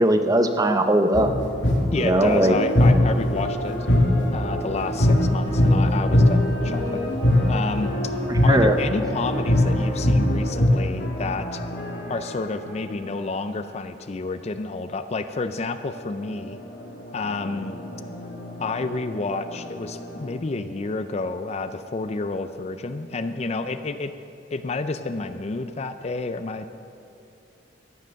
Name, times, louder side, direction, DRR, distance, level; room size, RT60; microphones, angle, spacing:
voice 1, 0.0-1.3 2.0-2.6 8.3-8.8, right 1 dB, 20° right, 7 dB, 0.8 m, -19 dB
sound 1, 1.1-10.7, left 1 dB, 85° left, 1.7 m, -21 dB
sound 2, 1.4-13.9 15.9-20.4, equal, 55° left, 2.0 m, -37 dB
voice 2, 1.9-3.8 4.3-7.1 7.5-11.6 12.1-16.6 17.1-17.8 18.6-24.1 24.5-26.7, left 3 dB, 35° left, 10 dB, 0.5 m, -30 dB
sound 3, 5.0-10.0, right 1 dB, 70° right, 2.7 m, -41 dB
14.0 x 9.2 x 6.4 m, 2.7 s
head